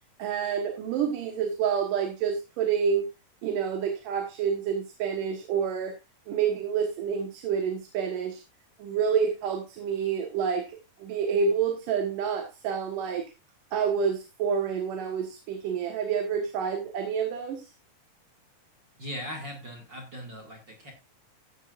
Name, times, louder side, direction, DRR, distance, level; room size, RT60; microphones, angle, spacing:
voice 1, 0.2-3.0 3.4-5.9 6.3-8.4 8.8-13.3 13.7-17.7, right 7 dB, 75° right, 4 dB, 3.0 m, -28 dB
voice 2, 19.0-20.9, equal, 35° right, 2 dB, 2.3 m, -39 dB
14.5 x 10.5 x 2.5 m, 0.24 s
omnidirectional pair, 3.9 m